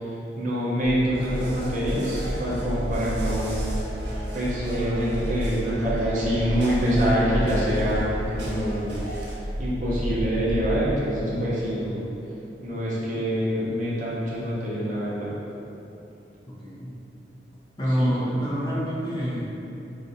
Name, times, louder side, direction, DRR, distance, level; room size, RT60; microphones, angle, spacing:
voice 1, 0.4-3.6 4.3-8.9 9.6-12.0 12.6-15.3 18.0-18.1, equal, 45° right, -7 dB, 0.7 m, -25 dB
sound 1, 0.8-10.9, equal, 15° right, 1.0 m, -31 dB
sound 2, 1.1-9.3, right 1 dB, 85° right, 0.6 m, -41 dB
voice 2, 11.2-11.5 16.6-16.9 17.8-19.4, equal, 25° left, -7 dB, 0.6 m, -27 dB
2.6 x 2.3 x 3.9 m, 2.9 s
head